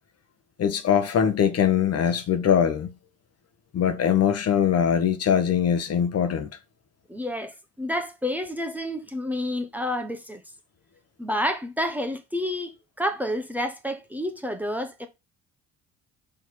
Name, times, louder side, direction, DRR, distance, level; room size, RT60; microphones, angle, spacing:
voice 1, 0.6-2.9 3.7-6.5, left 8 dB, 45° left, 1.2 m, -22 dB
voice 2, 7.1-7.5 7.8-10.4 11.2-15.1, left 1 dB, 5° right, 1.1 m, -29 dB
6.2 x 3.3 x 6.0 m
hypercardioid pair, 55°, 36 cm